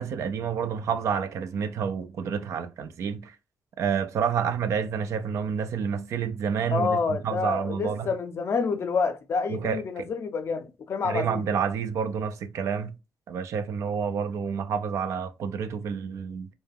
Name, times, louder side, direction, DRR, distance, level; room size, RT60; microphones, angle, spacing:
voice 1, 0.0-3.3 3.8-8.1 9.5-10.1 11.0-13.0 13.3-16.5, right 7 dB, 75° right, 0.4 m, -29 dB
voice 2, 6.7-11.4, left 5 dB, 55° left, 0.5 m, -28 dB
2.2 x 2.1 x 3.2 m
cardioid pair, 65°, 5 cm